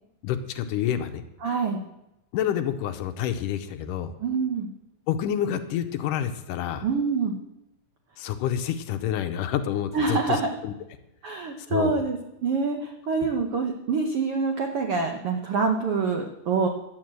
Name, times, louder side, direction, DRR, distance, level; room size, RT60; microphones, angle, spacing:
voice 1, 0.2-1.2 2.3-4.1 5.1-6.9 8.2-10.7 11.7-12.0, left 10 dB, 75° left, 8 dB, 2.1 m, -28 dB
voice 2, 1.4-1.8 4.2-4.7 6.8-7.4 9.9-10.5 11.2-16.7, right 4 dB, 85° right, 4 dB, 1.2 m, -26 dB
12.0 x 8.8 x 7.7 m, 0.90 s
omnidirectional pair, 4.1 m